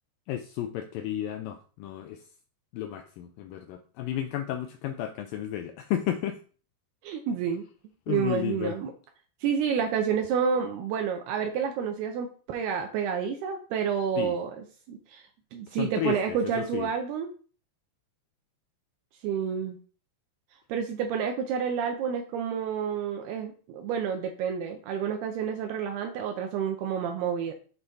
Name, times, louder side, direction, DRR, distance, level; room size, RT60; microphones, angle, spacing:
voice 1, 0.3-2.3 2.7-6.4 8.1-8.8 14.2-14.4 15.7-16.9, left 11 dB, 90° left, 6 dB, 2.0 m, -33 dB
voice 2, 7.0-7.6 8.1-8.9 9.4-14.5 14.9-17.3 19.2-19.8 20.7-27.5, right 7 dB, 80° right, 4 dB, 2.8 m, -29 dB
7.7 x 5.5 x 4.1 m, 0.40 s
omnidirectional pair, 4.7 m